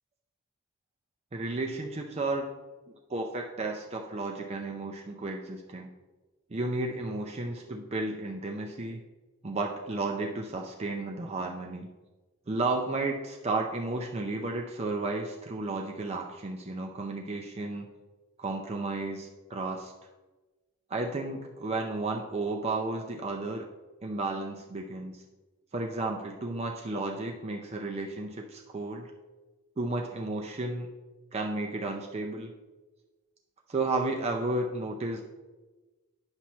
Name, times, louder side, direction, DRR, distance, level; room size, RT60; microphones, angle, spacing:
voice 1, 1.3-2.5 3.1-5.9 6.5-9.0 9.4-11.9 12.5-17.9 18.4-19.9 20.9-23.7 24.0-25.2 25.7-29.1 29.8-30.9 31.3-32.5 33.7-35.2, right 2 dB, 30° right, 1 dB, 0.5 m, -33 dB
9.6 x 5.8 x 3.1 m, 1.2 s
head